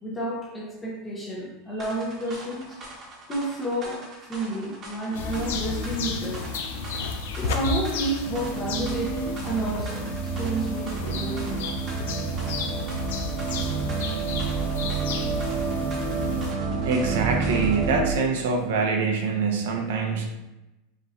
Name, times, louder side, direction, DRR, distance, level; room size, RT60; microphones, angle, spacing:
voice 1, 0.0-2.8 3.3-4.0 4.3-6.5 7.3-11.6, right 1 dB, 10° left, -3 dB, 0.8 m, -30 dB
sound 1, 1.8-17.9, right 1 dB, 20° right, 1.0 m, -43 dB
sound 2, 5.1-16.5, left 4 dB, 75° left, 0.6 m, -33 dB
sound 3, 8.2-18.1, right 5 dB, 50° right, 0.4 m, -29 dB
voice 2, 16.8-20.3, right 4 dB, 75° right, 2 dB, 0.8 m, -25 dB
5.2 x 3.1 x 2.6 m, 0.97 s
supercardioid pair, 175°, 0 cm